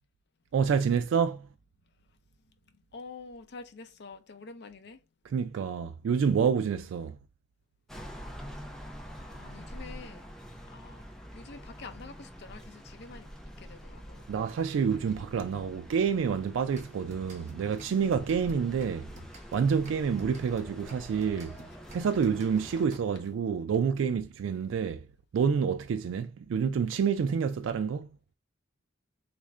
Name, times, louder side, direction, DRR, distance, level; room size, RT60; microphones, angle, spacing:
voice 1, 0.5-1.5 5.3-7.2 14.3-19.1 19.5-21.6 21.9-25.0 25.3-28.2, right 6 dB, 85° right, 0.3 m, -28 dB
voice 2, 2.4-5.0 9.2-10.3 10.7-14.3, left 4 dB, 60° left, 0.6 m, -48 dB
sound 1, 7.9-22.8, equal, 5° left, 0.5 m, -46 dB
sound 2, 16.7-23.4, equal, 40° right, 0.9 m, -52 dB
3.5 x 2.5 x 3.2 m
head